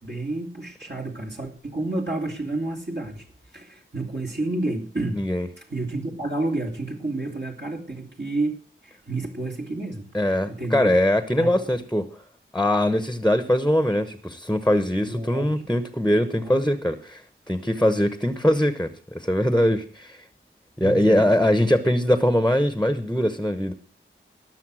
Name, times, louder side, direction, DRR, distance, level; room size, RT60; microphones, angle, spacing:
voice 1, 0.0-3.3 3.5-5.3 5.6-8.5 8.8-10.1 10.5-10.9 11.4-11.8 15.1-15.7 16.4-16.7 20.8-21.3 21.6-21.7, right 2 dB, 55° right, 0 dB, 2.8 m, -30 dB
voice 2, 5.1-5.5 10.1-12.1 12.5-17.2 17.5-20.2 20.8-23.7, left 1 dB, 5° left, 11 dB, 1.1 m, -22 dB
18.5 x 6.7 x 6.3 m, 0.40 s
wide cardioid pair, 70°, 21 cm